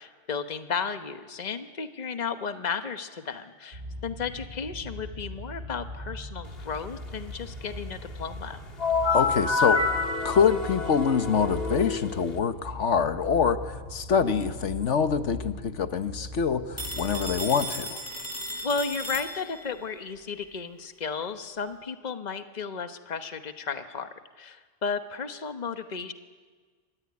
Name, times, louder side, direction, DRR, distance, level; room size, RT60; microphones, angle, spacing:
voice 1, 0.0-8.6 18.6-24.1 24.4-26.1, left 5 dB, 40° left, 8 dB, 1.2 m, -34 dB
sound 1, 3.7-17.4, left 1 dB, 75° right, 4.9 m, -40 dB
sound 2, 8.8-12.4, left 4 dB, 60° left, 1.8 m, -27 dB
voice 2, 9.1-9.9 10.2-18.0, left 6 dB, 90° left, 10 dB, 1.5 m, -25 dB
Telephone, 16.8-19.8, equal, 15° right, 3.0 m, -36 dB
25.5 x 20.0 x 9.7 m, 1.5 s
omnidirectional pair, 1.2 m